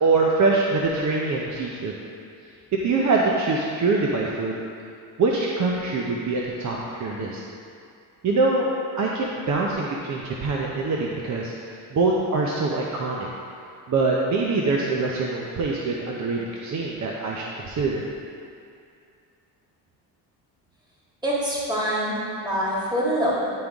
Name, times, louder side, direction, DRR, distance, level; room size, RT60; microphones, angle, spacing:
voice 1, 0.0-1.9 2.7-4.6 5.2-7.4 8.2-8.7 9.0-11.5 11.9-13.3 13.9-18.0, right 3 dB, 45° right, -2 dB, 0.7 m, -24 dB
voice 2, 21.2-22.2 22.4-23.5, equal, 10° right, -6 dB, 1.7 m, -24 dB
10.5 x 3.8 x 3.5 m, 2.4 s
cardioid pair, 90°, 41 cm